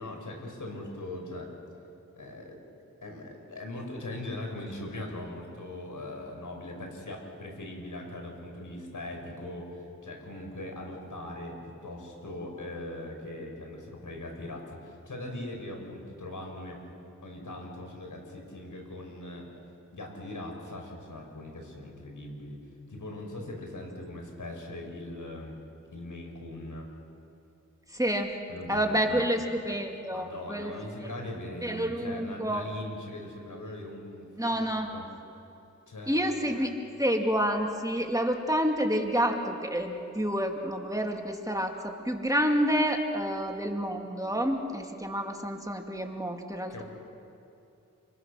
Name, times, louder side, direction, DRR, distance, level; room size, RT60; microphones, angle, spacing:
voice 1, 0.0-1.5 2.1-2.6 3.0-17.0 17.2-19.5 19.9-22.6 22.9-25.6 25.9-26.9 28.5-29.3 30.1-35.0 35.9-36.5 46.7-46.8, left 1 dB, 70° left, 2 dB, 5.7 m, -40 dB
voice 2, 27.9-28.3 28.7-30.7 31.0-31.1 31.6-32.6 34.4-34.9 36.1-36.7 37.0-46.8, equal, 10° right, 2 dB, 2.6 m, -29 dB
29.0 x 22.0 x 6.6 m, 2.7 s
cardioid pair, 45°, 32 cm